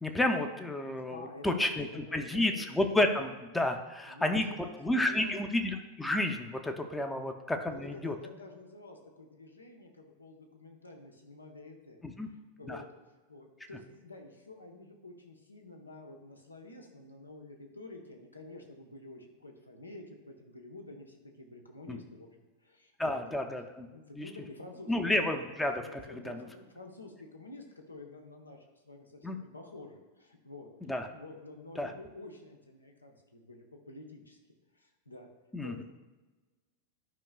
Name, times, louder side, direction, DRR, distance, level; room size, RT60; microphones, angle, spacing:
voice 1, 0.0-4.5 4.8-8.2 12.0-12.3 12.7-12.8 21.9-22.0 23.0-23.9 24.2-24.3 24.9-26.5 29.2-29.4 30.9-31.1 31.8-31.9 35.5-35.7, left 1 dB, 5° left, 5 dB, 0.6 m, -31 dB
voice 2, 0.9-2.7 4.1-5.4 7.1-7.2 7.6-12.9 13.3-22.3 22.6-23.2 23.9-24.9 25.8-30.7 31.1-34.4 34.7-35.8, left 2 dB, 80° left, 2 dB, 1.1 m, -49 dB
12.0 x 5.3 x 2.4 m, 1.2 s
figure-of-eight pair, 90°, 0 cm